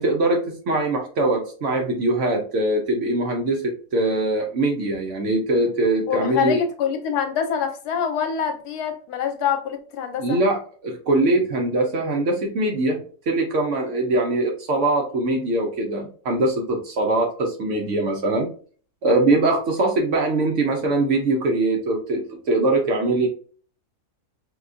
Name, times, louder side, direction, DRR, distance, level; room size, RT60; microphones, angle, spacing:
voice 1, 0.0-6.6 10.2-10.6 10.8-18.5 19.0-23.3, right 2 dB, 65° right, 2 dB, 0.8 m, -22 dB
voice 2, 6.1-10.4, left 7 dB, 80° left, 6 dB, 1.2 m, -25 dB
4.7 x 2.2 x 2.5 m, 0.44 s
omnidirectional pair, 1.7 m